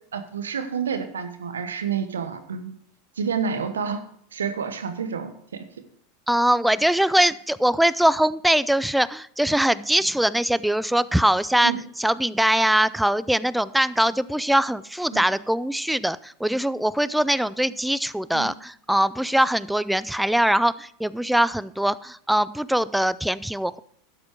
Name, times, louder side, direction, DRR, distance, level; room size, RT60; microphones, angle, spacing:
voice 1, 0.1-2.8 3.2-4.0 4.3-5.6 11.6-11.8 15.1-15.2 18.3-18.5, right 6 dB, 80° right, 9 dB, 1.1 m, -29 dB
voice 2, 6.3-11.7 12.0-23.8, right 1 dB, 5° right, 18 dB, 0.4 m, -22 dB
12.0 x 7.6 x 4.7 m, 0.64 s
hypercardioid pair, 90°, 0 cm